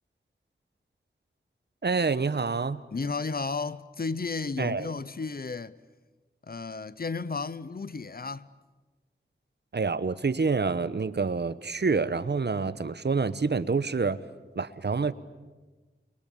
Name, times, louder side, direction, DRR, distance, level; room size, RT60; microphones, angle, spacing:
voice 1, 1.8-2.8 4.6-4.9 9.7-14.2 14.6-15.1, right 4 dB, 60° right, 1.0 m, -27 dB
voice 2, 2.9-5.8 6.4-8.5, left 4 dB, 50° left, 0.8 m, -33 dB
28.5 x 22.5 x 8.6 m
wide cardioid pair, 85°, 20 cm